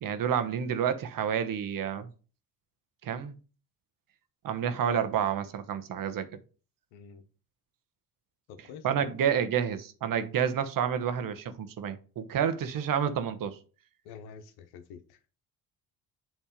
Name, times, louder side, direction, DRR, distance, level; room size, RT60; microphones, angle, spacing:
voice 1, 0.0-2.1 3.0-3.4 4.4-6.3 8.8-13.6, right 8 dB, 60° right, 1.1 m, -29 dB
voice 2, 6.9-7.2 8.5-9.1 14.0-15.3, left 6 dB, 90° left, 1.1 m, -47 dB
7.3 x 3.4 x 5.1 m
supercardioid pair, 70°, 37 cm